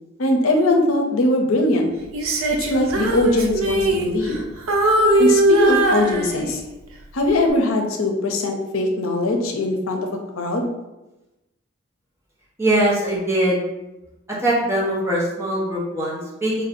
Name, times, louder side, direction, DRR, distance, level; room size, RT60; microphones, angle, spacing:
voice 1, 0.2-1.9 2.7-4.4 5.2-6.6 7.1-10.1 10.4-10.7, left 2 dB, 90° left, 3 dB, 0.6 m, -20 dB
Female singing, 2.1-4.4 4.7-6.7 7.3-7.5, right 1 dB, 85° right, 0.6 m, -20 dB
voice 2, 12.6-13.6 14.4-16.6, right 1 dB, 15° right, -6 dB, 0.8 m, -21 dB
3.2 x 2.7 x 4.2 m, 1.0 s
head